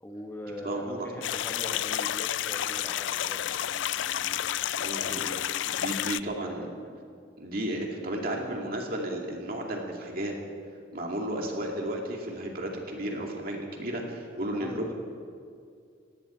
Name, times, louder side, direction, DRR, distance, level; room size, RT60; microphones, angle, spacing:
voice 1, 0.0-4.5 5.0-5.5 6.2-7.2 8.2-8.6 14.5-14.9, equal, 10° left, 1 dB, 1.3 m, -42 dB
voice 2, 0.6-1.2 4.7-5.3 5.7-6.7 7.4-10.3 10.9-14.9, right 1 dB, 50° right, 0 dB, 2.4 m, -33 dB
sound 1, 1.2-6.2, left 11 dB, 75° left, 0.4 m, -30 dB
18.0 x 17.5 x 4.5 m, 2.3 s
head